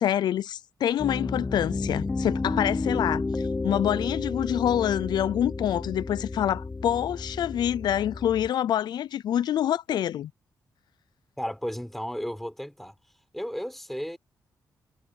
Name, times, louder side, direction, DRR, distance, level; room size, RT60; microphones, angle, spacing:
voice 1, 0.0-10.3, left 10 dB, 80° left, 0.4 m, -26 dB
Piano, 1.0-8.5, left 3 dB, 20° left, 0.6 m, -31 dB
voice 2, 11.4-13.0 13.3-14.2, equal, 5° left, 3.9 m, -33 dB
wide cardioid pair, 130°, 7 cm